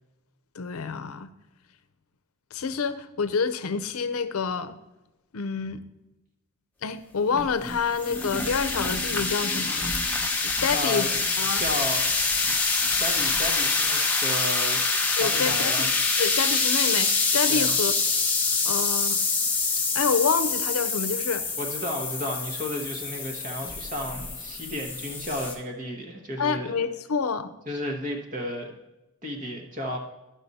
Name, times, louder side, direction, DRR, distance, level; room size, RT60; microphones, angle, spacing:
voice 1, 0.6-1.3 2.5-4.8 5.3-5.8 6.8-9.9 10.4-11.1 11.4-11.6 15.2-15.9 16.2-17.9 18.6-19.2 19.9-21.5 26.4-27.5, left 5 dB, 85° left, 12 dB, 0.6 m, -27 dB
sound 1, 7.3-25.5, left 4 dB, 10° left, 0.8 m, -26 dB
voice 2, 10.7-11.1 11.6-12.1 13.0-14.8 15.1-15.9 17.5-17.8 21.6-26.7 27.7-28.7 29.2-30.0, equal, 35° right, 1 dB, 1.1 m, -33 dB
12.0 x 6.1 x 4.1 m, 0.98 s
head